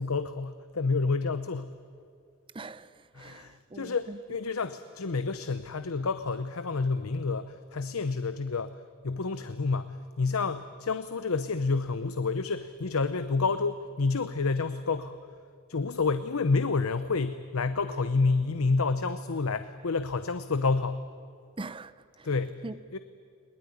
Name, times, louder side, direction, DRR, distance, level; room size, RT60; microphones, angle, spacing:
voice 1, 0.0-1.7 3.1-15.3 15.7-21.0 22.2-22.6 22.9-23.0, left 4 dB, 80° left, 0.8 m, -29 dB
voice 2, 2.5-4.2 21.6-22.3 22.6-22.7, right 2 dB, 25° right, 0.6 m, -42 dB
21.5 x 20.0 x 9.7 m
head